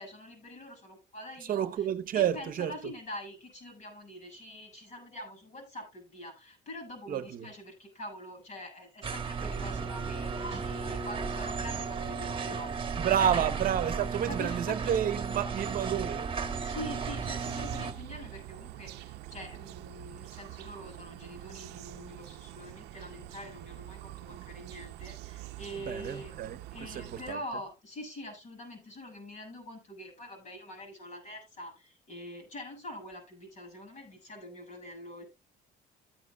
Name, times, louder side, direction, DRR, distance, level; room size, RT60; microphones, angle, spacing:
voice 1, 0.0-1.9 2.1-13.4 14.2-15.0 16.6-26.4 26.7-35.3, left 1 dB, 45° left, 7.5 m, -45 dB
voice 2, 1.5-2.7 7.1-7.5 13.0-16.3 25.9-27.4, right 10 dB, 55° right, 0.9 m, -30 dB
sound 1, 9.0-17.9, right 5 dB, 30° right, 1.4 m, -34 dB
sound 2, 16.8-27.3, right 15 dB, 80° right, 0.7 m, -46 dB
14.5 x 9.6 x 2.3 m
cardioid pair, 110°, 17 cm